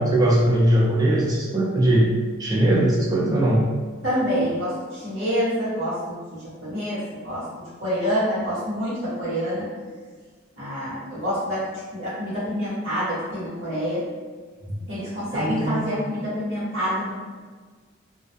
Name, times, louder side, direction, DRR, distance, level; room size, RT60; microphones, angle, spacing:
voice 1, 0.0-2.1 2.4-3.6 14.6-14.8 15.3-15.9, right 1 dB, 20° right, -4 dB, 0.4 m, -20 dB
voice 2, 4.0-7.5 7.8-9.7 10.6-11.7 11.9-14.0 14.9-17.1, equal, 70° right, -13 dB, 0.9 m, -27 dB
2.2 x 2.1 x 2.6 m, 1.5 s
head